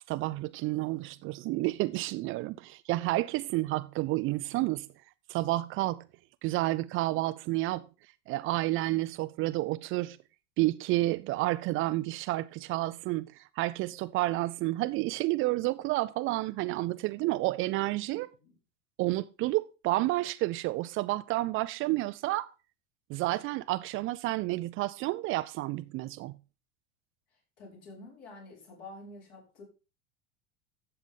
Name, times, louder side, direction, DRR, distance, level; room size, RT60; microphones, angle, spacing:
voice 1, 0.1-4.9 5.3-6.0 6.4-7.8 8.3-10.2 10.6-18.3 19.0-22.5 23.1-26.4, right 18 dB, 35° right, 0.5 m, -30 dB
voice 2, 18.0-18.5 27.6-29.6, left 2 dB, 55° left, 5.6 m, -49 dB
12.0 x 7.8 x 3.8 m
figure-of-eight pair, 80°, 37 cm